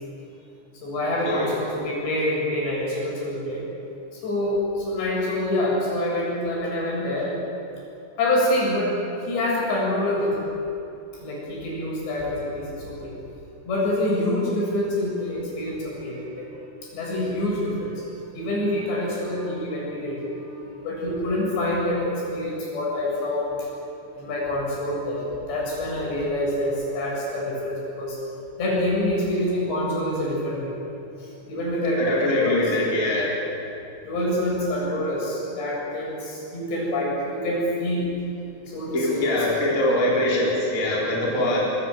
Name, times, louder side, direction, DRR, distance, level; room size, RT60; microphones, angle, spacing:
voice 1, 0.8-3.7 4.1-7.3 8.2-8.9 9.3-10.4 11.2-13.1 13.7-16.5 16.9-18.1 18.3-23.7 24.2-28.2 28.6-30.7 31.2-32.8 34.0-38.1 38.7-39.5 41.2-41.4, left 1 dB, 65° left, -4 dB, 9.4 m, -26 dB
voice 2, 32.0-33.4 38.9-41.7, left 1 dB, 20° left, -4 dB, 4.5 m, -23 dB
25.5 x 22.5 x 7.7 m, 2.8 s
omnidirectional pair, 5.5 m